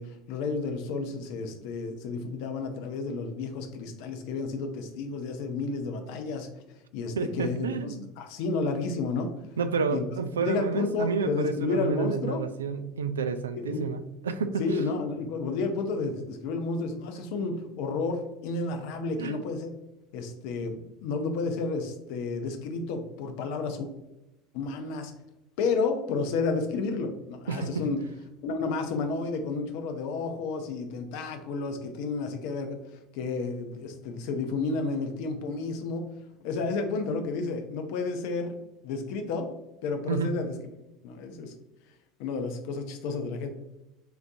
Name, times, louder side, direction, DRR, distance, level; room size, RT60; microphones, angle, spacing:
voice 1, 0.0-6.5 6.9-9.3 9.9-10.0 10.4-12.4 13.6-13.8 14.6-19.7 20.1-23.9 24.5-25.1 25.6-28.0 28.4-36.1 36.4-38.6 38.8-39.5 39.8-40.5 41.0-41.5 42.2-43.5, left 4 dB, 65° left, 6 dB, 0.6 m, -31 dB
voice 2, 7.2-8.1 9.6-14.8 19.2-19.4 27.5-27.9 40.1-40.4, right 5 dB, 85° right, 10 dB, 0.3 m, -30 dB
6.0 x 2.6 x 2.7 m, 0.96 s
hypercardioid pair, 75°, 0 cm